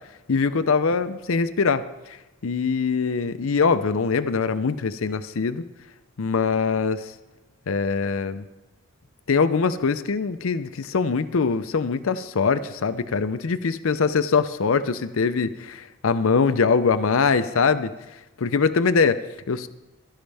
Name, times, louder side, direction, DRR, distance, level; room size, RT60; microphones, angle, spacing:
voice 1, 0.3-2.2 2.4-5.6 6.2-7.1 7.7-8.4 9.3-17.9 18.4-19.7, left 5 dB, 70° left, 12 dB, 0.6 m, -23 dB
16.0 x 12.5 x 3.4 m, 1.0 s
head